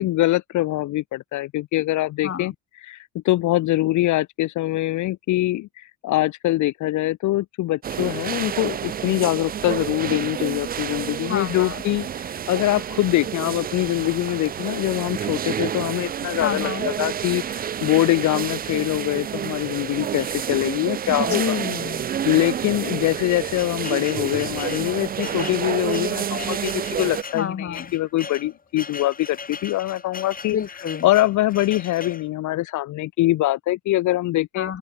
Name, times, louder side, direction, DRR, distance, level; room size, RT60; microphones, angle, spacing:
voice 1, 0.0-2.5 2.8-21.6 22.2-30.6 31.0-34.7, left 16 dB, 75° left, 0.6 m, -23 dB
voice 2, 2.2-2.5 11.3-11.8 16.4-16.9 21.3-22.0 25.5-25.6 27.3-27.9 30.5-31.1 34.6-34.8, left 8 dB, 45° left, 2.2 m, -29 dB
sound 1, 7.8-27.2, right 9 dB, 30° right, 0.4 m, -29 dB
sound 2, 20.2-21.0 21.7-21.9 22.2-22.3 23.0-32.3, left 5 dB, 30° left, 1.6 m, -39 dB
open air
cardioid pair, 90°, 30 cm